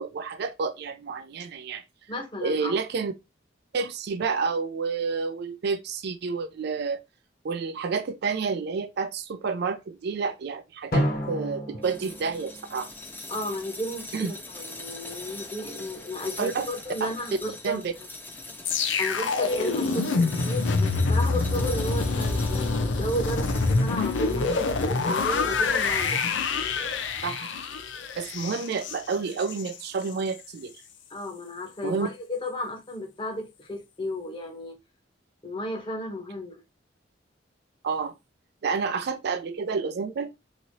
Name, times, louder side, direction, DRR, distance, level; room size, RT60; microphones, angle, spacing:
voice 1, 0.0-1.8 2.4-3.1 3.7-7.0 7.4-12.9 14.1-14.3 16.4-16.7 17.0-17.1 17.6-17.9 27.2-27.6 28.2-30.7 31.8-32.1 37.8-38.1 38.6-40.3, right 5 dB, 60° right, 0.4 m, -29 dB
voice 2, 2.1-2.8 13.3-17.8 19.0-20.1 20.4-26.2 31.1-34.8 35.4-36.6, equal, 25° left, 0.9 m, -33 dB
Drum, 10.9-13.6, equal, 55° left, 1.4 m, -31 dB
sound 1, 11.8-26.3, left 2 dB, 10° left, 0.4 m, -42 dB
sound 2, 18.7-29.8 30.1-30.3, left 4 dB, 75° left, 0.5 m, -26 dB
3.0 x 2.7 x 2.7 m
head